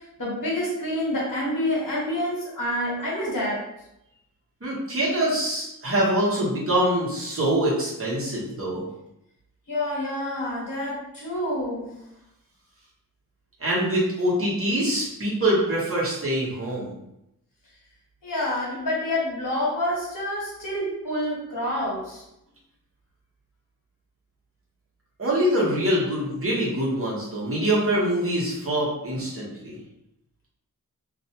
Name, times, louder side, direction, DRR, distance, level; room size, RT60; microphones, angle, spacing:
voice 1, 0.0-3.6 9.7-11.9 18.2-22.2, left 1 dB, 65° left, -6 dB, 1.2 m, -28 dB
voice 2, 4.6-8.8 13.6-16.9 25.2-29.8, right 1 dB, 40° right, -6 dB, 1.0 m, -24 dB
2.5 x 2.1 x 2.8 m, 0.83 s
wide cardioid pair, 60°, 36 cm